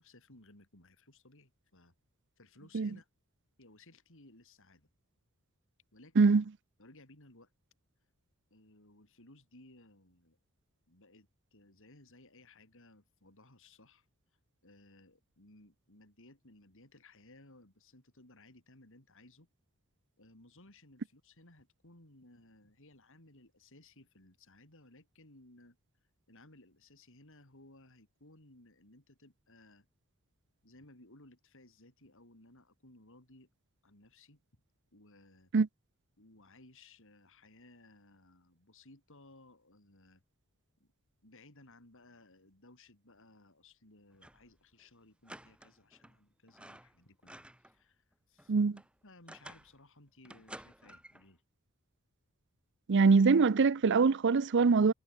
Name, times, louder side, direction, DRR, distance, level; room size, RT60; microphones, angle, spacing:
voice 1, 0.0-1.9 2.4-3.1 3.6-4.9 5.9-6.3 6.8-7.5 8.5-10.4 10.9-14.1 14.6-19.5 20.2-25.8 26.3-29.9 30.6-33.5 33.8-34.4 34.9-35.5 36.2-40.2 40.8-40.9 41.2-48.6 49.0-51.4, left 2 dB, 65° left, 5.9 m, -60 dB
sound 1, 44.1-44.5 44.8-44.9 45.2-46.2 46.5-47.8 48.1-49.8 50.2-51.3, right 1 dB, 5° right, 4.1 m, -53 dB
voice 2, 52.9-54.9, right 4 dB, 55° right, 0.5 m, -23 dB
head